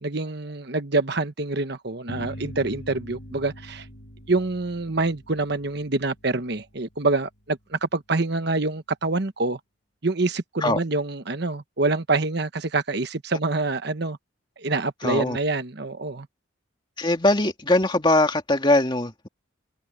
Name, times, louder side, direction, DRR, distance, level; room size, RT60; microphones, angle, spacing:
voice 1, 0.0-3.9 4.3-9.6 10.0-14.2 14.6-16.3, right 3 dB, 55° right, 1.2 m, -26 dB
sound 1, 2.1-7.2, equal, 55° left, 3.6 m, -42 dB
voice 2, 15.0-15.4 17.0-19.3, left 2 dB, 25° left, 2.5 m, -21 dB
head